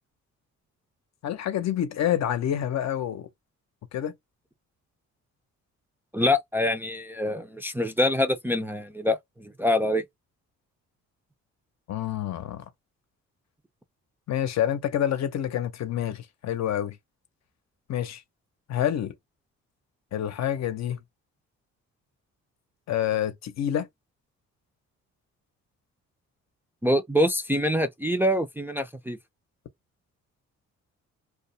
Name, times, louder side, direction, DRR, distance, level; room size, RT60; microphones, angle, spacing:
voice 1, 1.2-3.3 3.9-4.2 11.9-12.6 14.3-17.0 17.9-18.2 18.7-19.1 20.1-21.0 22.9-23.9, left 10 dB, 60° left, 0.7 m, -27 dB
voice 2, 6.1-10.0 26.8-29.2, left 1 dB, 5° right, 0.4 m, -25 dB
2.4 x 2.1 x 2.6 m
cardioid pair, 90°, 30 cm